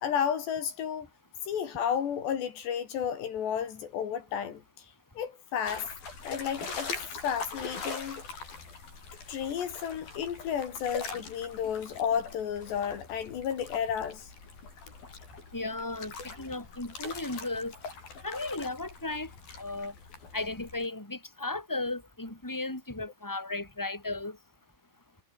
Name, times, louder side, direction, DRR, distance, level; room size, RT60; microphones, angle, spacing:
voice 1, 0.0-1.1 1.4-4.9 5.2-5.9 6.2-6.9 7.2-8.2 9.3-14.3, left 8 dB, 70° left, 4.6 m, -32 dB
sound 1, 5.7-20.9, left 4 dB, 50° left, 8.3 m, -42 dB
voice 2, 15.5-17.7 18.2-19.3 19.6-19.9 20.3-24.4, left 2 dB, 5° left, 5.3 m, -35 dB
omnidirectional pair, 5.2 m